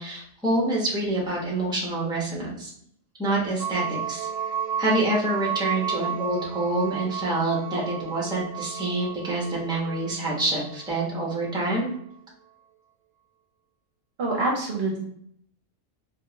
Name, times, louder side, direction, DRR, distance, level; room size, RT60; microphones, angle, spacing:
voice 1, 0.0-2.7 3.2-4.3 4.8-11.9, right 2 dB, 5° right, -4 dB, 0.8 m, -27 dB
sound 1, 3.6-11.7, right 8 dB, 85° right, 1.0 m, -33 dB
voice 2, 14.2-15.1, right 2 dB, 60° right, -2 dB, 0.9 m, -26 dB
3.6 x 2.5 x 2.8 m, 0.67 s
omnidirectional pair, 1.3 m